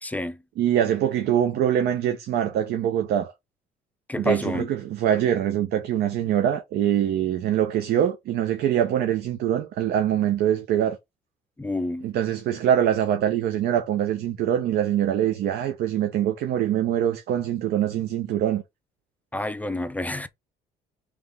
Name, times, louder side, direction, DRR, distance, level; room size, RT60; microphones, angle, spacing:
voice 1, 0.0-0.4 4.1-4.7 11.6-12.1 19.3-20.3, left 1 dB, 10° left, 0.4 m, -29 dB
voice 2, 0.6-3.3 4.2-11.0 12.0-18.6, right 10 dB, 70° right, 0.8 m, -23 dB
3.5 x 3.1 x 3.6 m
cardioid pair, 110°, 17 cm